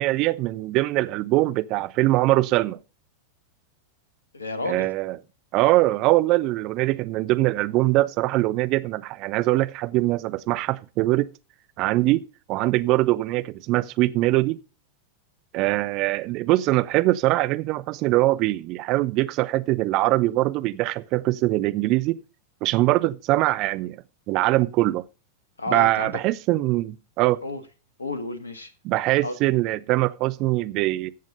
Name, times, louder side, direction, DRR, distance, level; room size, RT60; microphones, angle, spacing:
voice 1, 0.0-2.8 4.7-5.2 5.5-11.3 11.8-12.2 12.5-14.6 15.5-22.2 22.6-24.0 24.3-25.0 25.7-27.4 28.8-31.1, right 18 dB, 40° right, 0.6 m, -22 dB
voice 2, 4.3-4.9 25.6-26.1 27.4-27.6 28.0-28.7 29.2-29.4, left 2 dB, 75° left, 1.4 m, -31 dB
14.0 x 7.5 x 4.0 m
figure-of-eight pair, 90°, 0 cm